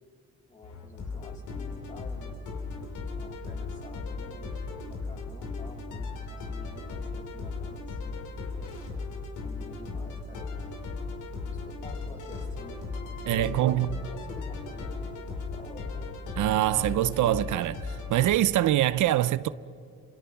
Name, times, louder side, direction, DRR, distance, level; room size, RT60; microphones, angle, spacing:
voice 1, 0.5-4.6 4.8-8.2 8.5-8.7 9.4-10.7 11.4-12.9 13.2-16.1, left 2 dB, 25° left, 6.8 m, -49 dB
sound 1, 0.6-18.4, left 4 dB, 75° left, 4.3 m, -37 dB
voice 2, 13.3-13.9 16.4-17.8 18.1-19.5, right 13 dB, 75° right, 0.7 m, -24 dB
28.5 x 27.0 x 5.9 m
cardioid pair, 90°, 30 cm